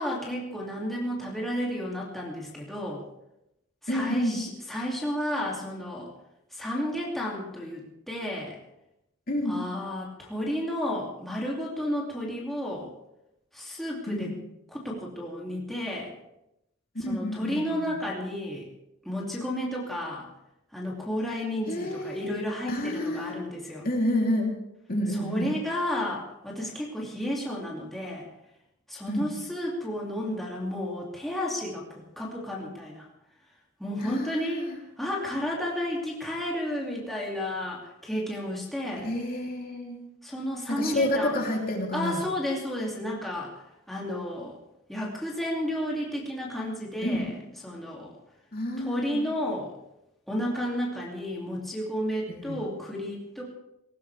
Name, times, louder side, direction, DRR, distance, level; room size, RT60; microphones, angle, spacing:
voice 1, 0.0-3.0 3.8-6.1 6.5-8.6 9.5-12.9 13.5-14.3 14.7-16.1 17.1-18.7 19.0-20.3 20.7-23.9 25.1-28.3 28.9-33.1 33.8-39.1 40.2-41.4 41.9-44.6 44.9-47.3 47.6-48.1 48.8-49.7 50.3-53.4, equal, ahead, -5 dB, 2.6 m, -32 dB
voice 2, 3.9-4.4 9.3-9.6 14.1-14.3 17.0-18.0 21.7-22.2 22.7-23.4 23.8-24.5 24.9-25.5 29.1-29.3 34.0-34.8 39.0-40.0 40.7-42.2 47.0-47.3 48.5-49.3 52.3-52.6, left 1 dB, 45° left, 0 dB, 3.2 m, -29 dB
19.0 x 18.0 x 3.4 m, 0.86 s
head